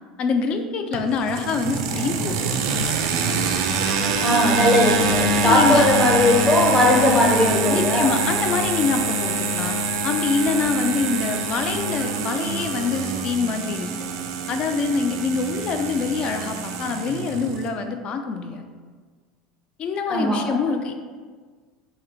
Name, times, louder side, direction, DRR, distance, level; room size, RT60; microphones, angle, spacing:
voice 1, 0.2-2.6 5.4-5.9 7.7-9.7 10.0-13.9 14.5-18.6 19.8-20.9, left 4 dB, 45° left, 6 dB, 0.4 m, -25 dB
sound 1, 0.9-17.7, right 3 dB, 65° right, 0.4 m, -25 dB
voice 2, 4.2-8.1 20.1-20.6, left 1 dB, 15° left, -1 dB, 0.8 m, -19 dB
4.8 x 2.0 x 2.9 m, 1.5 s
hypercardioid pair, 75°, 2 cm